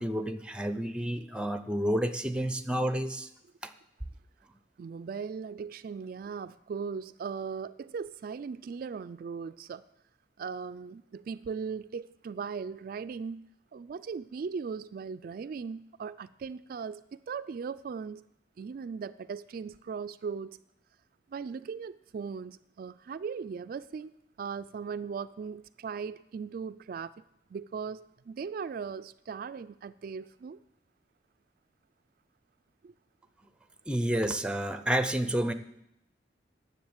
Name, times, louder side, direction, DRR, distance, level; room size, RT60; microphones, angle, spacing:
voice 1, 0.0-3.3 3.6-3.7 33.9-35.5, right 1 dB, 5° right, 11 dB, 0.6 m, -30 dB
voice 2, 4.8-9.8 10.4-13.4 13.7-18.2 18.6-20.6 21.3-24.1 24.4-27.1 27.5-30.6 32.8-32.9, right 5 dB, 55° right, 12 dB, 0.3 m, -38 dB
10.5 x 7.3 x 8.0 m, 0.81 s
head